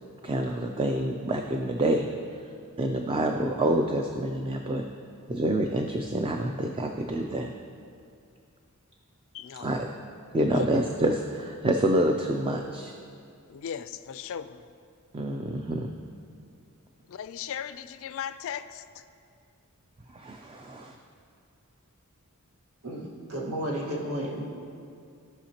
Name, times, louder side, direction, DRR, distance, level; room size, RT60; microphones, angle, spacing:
voice 1, 0.2-2.1 2.8-4.8 5.3-7.5 9.6-9.9 10.3-12.9 15.1-15.9 20.1-20.5, right 1 dB, 25° right, 3 dB, 0.4 m, -27 dB
voice 2, 9.3-9.8 10.3-10.9 13.5-14.6 17.1-19.0, left 8 dB, 60° left, 12 dB, 0.4 m, -37 dB
voice 3, 22.8-24.4, right 1 dB, 85° right, -3 dB, 1.5 m, -32 dB
15.5 x 5.7 x 2.9 m, 2.4 s
head